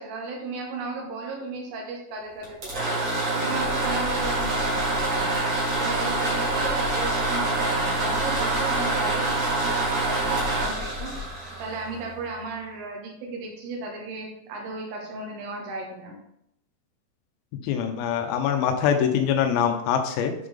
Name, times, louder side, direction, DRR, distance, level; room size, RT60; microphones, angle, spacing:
voice 1, 0.0-3.0 3.3-5.4 5.8-11.1 11.6-16.2, right 3 dB, 80° right, 0 dB, 3.8 m, -35 dB
sound 1, 2.4-12.2, right 2 dB, 60° right, 1.1 m, -26 dB
sound 2, 3.5-11.3, left 4 dB, 65° left, 2.1 m, -39 dB
voice 2, 17.6-20.3, left 8 dB, 85° left, 6 dB, 3.3 m, -23 dB
9.3 x 3.8 x 3.4 m, 0.78 s
omnidirectional pair, 5.9 m